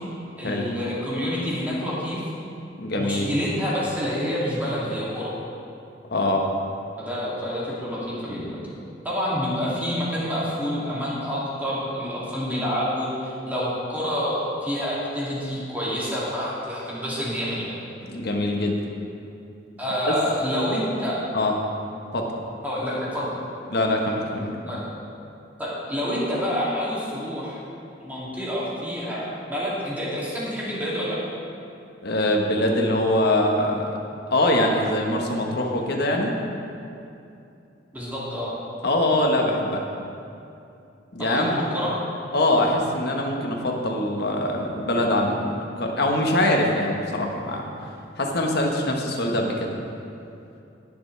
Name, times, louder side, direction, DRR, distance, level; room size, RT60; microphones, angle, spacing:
voice 1, 0.4-2.2 2.9-5.3 7.0-8.6 9.0-17.8 19.8-21.3 22.6-23.3 24.7-24.9 25.6-27.6 28.0-31.2 37.9-38.6 41.2-41.9, equal, 10° right, -8 dB, 2.7 m, -28 dB
voice 2, 2.8-3.3 6.1-6.4 18.1-18.8 20.1-20.2 21.3-21.5 22.1-22.2 23.7-24.5 32.0-33.9 34.3-36.3 38.8-39.8 41.1-41.6 42.3-47.7 48.2-49.7, left 1 dB, 60° left, 0 dB, 1.4 m, -23 dB
18.5 x 7.1 x 3.4 m, 2.7 s
head